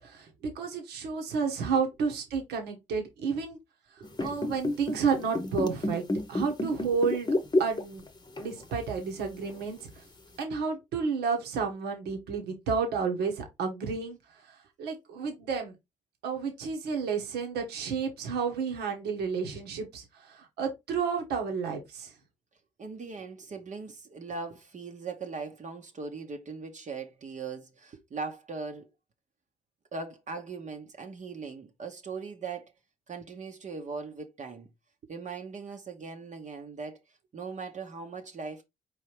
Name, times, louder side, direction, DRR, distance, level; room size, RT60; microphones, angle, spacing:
voice 1, 0.0-3.6 4.2-6.0 6.3-8.0 8.4-10.0 10.4-14.2 14.5-15.7 16.2-22.1, right 5 dB, 70° right, 1.2 m, -31 dB
sound 1, 4.0-8.1 8.4-8.6 9.4-9.5, left 2 dB, 25° left, 0.9 m, -29 dB
voice 2, 22.8-28.9 29.9-32.7 33.1-34.7 35.1-37.0 37.3-38.6, right 4 dB, 45° right, 0.9 m, -40 dB
4.7 x 3.2 x 3.2 m
hypercardioid pair, 45°, 18 cm